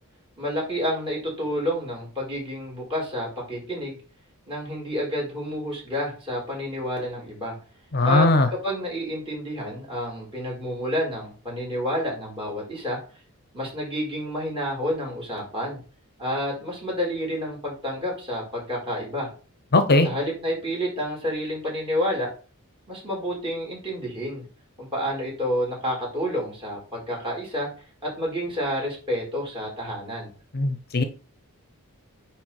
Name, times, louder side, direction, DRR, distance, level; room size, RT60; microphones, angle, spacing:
voice 1, 0.4-4.0 4.5-7.5 8.0-8.3 8.6-13.0 13.5-15.8 16.2-19.3 20.0-22.3 22.9-24.5 24.8-27.7 28.0-30.3, equal, 25° right, -3 dB, 4.4 m, -29 dB
voice 2, 7.9-8.5 19.7-20.1 30.5-31.0, left 2 dB, 45° left, 9 dB, 0.8 m, -19 dB
9.5 x 3.5 x 4.4 m, 0.36 s
head